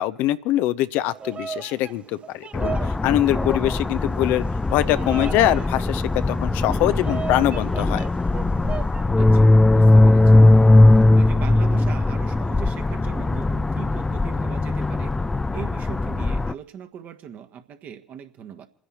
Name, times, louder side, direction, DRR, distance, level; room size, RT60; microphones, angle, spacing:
voice 1, 0.0-2.7 3.0-4.4 4.7-8.0, left 14 dB, 60° left, 14 dB, 0.7 m, -23 dB
Bird vocalization bird call bird song, 1.0-9.1, right 6 dB, 30° right, 0.7 m, -37 dB
sound 1, 2.5-16.5, left 2 dB, 15° left, 0.5 m, -19 dB
sound 2, 6.3-8.8 9.0-9.4 9.7-10.1 10.4-10.8 11.1-11.4, left 7 dB, 40° left, 1.0 m, -35 dB
voice 2, 9.1-10.4 11.1-15.1 15.5-18.7, right 8 dB, 50° right, 7 dB, 1.6 m, -39 dB
29.5 x 10.0 x 4.3 m, 0.80 s
figure-of-eight pair, 60°, 4 cm